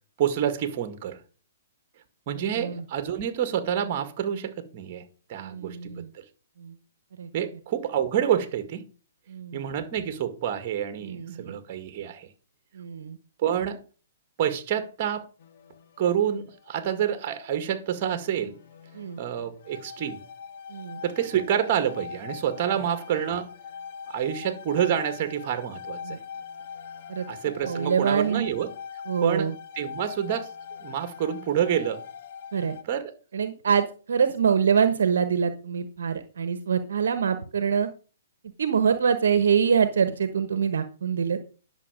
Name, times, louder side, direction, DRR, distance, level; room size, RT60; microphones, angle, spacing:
voice 1, 0.2-1.2 2.3-6.2 7.3-8.9 9.5-12.3 13.4-13.8 14.4-15.2 16.0-18.6 19.2-20.2 21.0-23.5 24.1-26.2 27.3-28.7 29.2-29.5 29.8-30.5 30.8-32.0 32.9-33.1, right 9 dB, 40° right, 2.1 m, -28 dB
voice 2, 2.3-2.8 5.4-6.1 6.6-6.8 7.2-7.3 9.3-9.6 11.0-11.6 12.7-13.2 18.9-19.2 20.7-21.0 26.0-26.2 27.1-27.3 27.6-28.5 29.1-29.5 32.5-32.7 33.3-37.9 38.6-41.4, right 6 dB, 75° right, 1.2 m, -25 dB
sound 1, 15.4-17.5 18.0-32.8, left 7 dB, 55° left, 1.8 m, -42 dB
11.0 x 6.9 x 5.2 m
hypercardioid pair, 130°, 0 cm